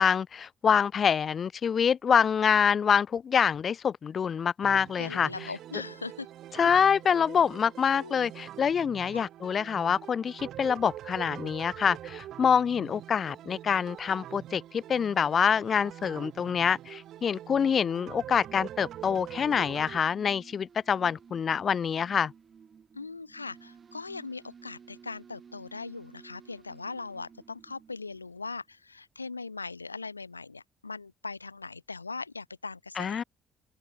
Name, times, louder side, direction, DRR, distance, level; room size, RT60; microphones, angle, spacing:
voice 1, 0.0-5.3 6.6-22.3 33.0-33.2, left 7 dB, 45° left, 0.6 m, -26 dB
sound 1, 4.6-20.0, right 12 dB, 60° right, 2.6 m, -44 dB
voice 2, 5.0-6.3 7.9-8.3 9.1-9.3 22.9-33.2, left 4 dB, 90° left, 0.6 m, -40 dB
sound 2, 18.4-28.7, right 6 dB, 40° right, 3.3 m, -54 dB
open air
figure-of-eight pair, 45°, 0 cm